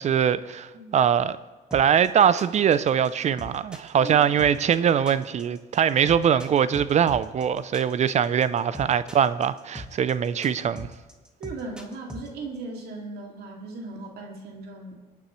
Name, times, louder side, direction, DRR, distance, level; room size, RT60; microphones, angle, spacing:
voice 1, 0.0-1.4 1.7-10.9, right 8 dB, 40° right, 0.5 m, -22 dB
sound 1, 1.7-12.3, left 1 dB, 5° right, 1.7 m, -40 dB
voice 2, 11.4-15.0, right 3 dB, 70° right, 2.5 m, -37 dB
23.5 x 9.4 x 3.2 m
cardioid pair, 110°, 17 cm